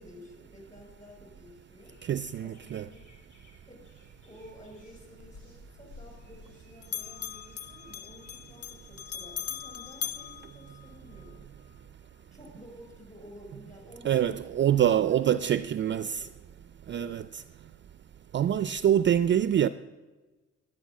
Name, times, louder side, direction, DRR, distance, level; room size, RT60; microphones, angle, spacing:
voice 1, 0.0-2.0 2.4-3.1 3.7-3.9 4.2-11.5 12.3-16.6 16.9-17.2, equal, 25° left, 5.2 m, -52 dB
sound 1, 1.8-8.8, right 1 dB, 80° left, 4.3 m, -59 dB
voice 2, 2.0-2.9 14.0-16.2 16.9-17.4 18.3-19.7, right 10 dB, 40° right, 0.4 m, -25 dB
Bell, 5.2-6.6 6.8-11.3, left 9 dB, 55° left, 0.6 m, -40 dB
10.5 x 10.5 x 7.3 m
cardioid pair, 90°, 30 cm